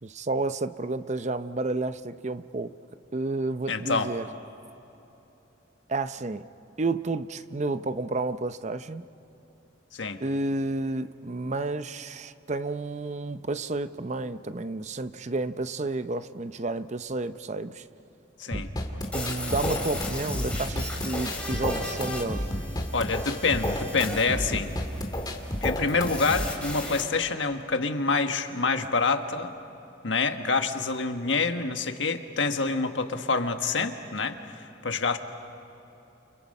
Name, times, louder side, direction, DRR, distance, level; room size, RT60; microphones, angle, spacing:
voice 1, 0.0-2.7 3.1-4.3 5.9-6.5 6.8-9.1 10.2-17.8 18.5-18.6 19.1-22.5, right 2 dB, 40° right, 12 dB, 0.7 m, -31 dB
voice 2, 3.7-4.1 9.9-10.2 18.4-18.7 22.9-24.7 25.6-29.5 30.0-35.2, left 4 dB, 80° left, 6 dB, 1.5 m, -27 dB
sound 1, 18.5-26.5, equal, 20° left, 2.2 m, -31 dB
sound 2, 19.0-27.0, left 2 dB, 5° left, 3.9 m, -38 dB
29.5 x 29.5 x 5.4 m, 3.0 s
head